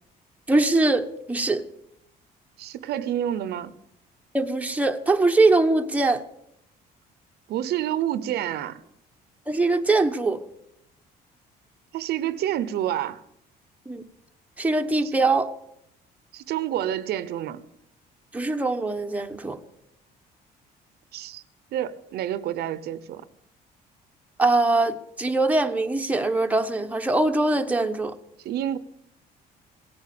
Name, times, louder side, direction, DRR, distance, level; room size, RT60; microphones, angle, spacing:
voice 1, 0.5-1.6 4.3-6.2 9.5-10.4 13.9-14.0 14.6-15.5 18.3-19.6 24.4-28.1, right 2 dB, 10° right, 1.2 m, -22 dB
voice 2, 2.6-3.7 7.5-8.8 11.9-13.2 15.0-15.1 16.3-17.6 21.1-21.4 21.7-23.2 28.4-28.8, right 11 dB, 70° right, 0.9 m, -28 dB
17.0 x 9.7 x 8.6 m
cardioid pair, 110°, 17 cm